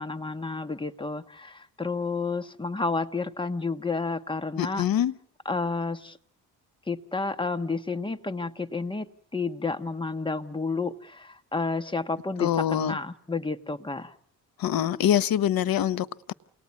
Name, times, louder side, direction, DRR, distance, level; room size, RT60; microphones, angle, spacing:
voice 1, 0.0-4.8 5.4-6.2 6.9-14.1, left 3 dB, 15° left, 1.3 m, -31 dB
voice 2, 4.6-5.1 12.4-13.0 14.6-16.3, left 10 dB, 65° left, 1.1 m, -25 dB
28.0 x 19.5 x 9.6 m
cardioid pair, 115°, 37 cm